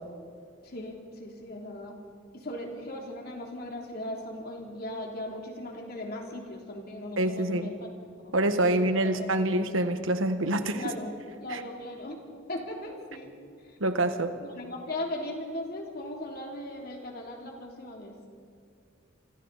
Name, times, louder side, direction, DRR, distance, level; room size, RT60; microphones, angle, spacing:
voice 1, 0.6-2.0 2.3-7.9 8.2-8.3 8.6-8.8 9.0-9.4 10.7-11.1 11.4-12.2 12.5-13.4 13.7-13.8 14.4-18.2, left 1 dB, 50° left, 1 dB, 3.1 m, -38 dB
voice 2, 7.2-7.7 8.3-10.9 11.5-11.6 13.8-14.4, right 1 dB, 85° right, 8 dB, 1.4 m, -26 dB
27.0 x 25.0 x 4.1 m, 2.3 s
head